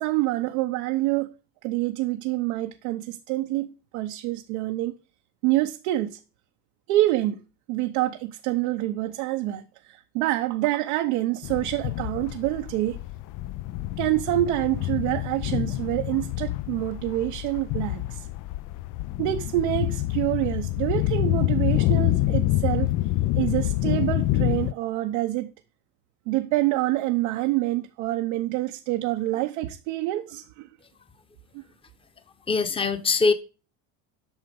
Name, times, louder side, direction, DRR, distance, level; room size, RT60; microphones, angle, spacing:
voice 1, 0.0-1.3 1.6-4.9 5.4-6.2 6.9-7.4 7.7-9.6 9.9-13.0 14.0-18.3 19.2-22.9 23.4-25.5 26.3-30.4, right 16 dB, 90° right, 1.0 m, -26 dB
sound 1, 11.4-24.7, left 16 dB, 50° left, 0.5 m, -27 dB
voice 2, 32.5-33.3, left 4 dB, 15° left, 1.0 m, -22 dB
9.4 x 6.0 x 5.2 m
cardioid pair, 120°, 40 cm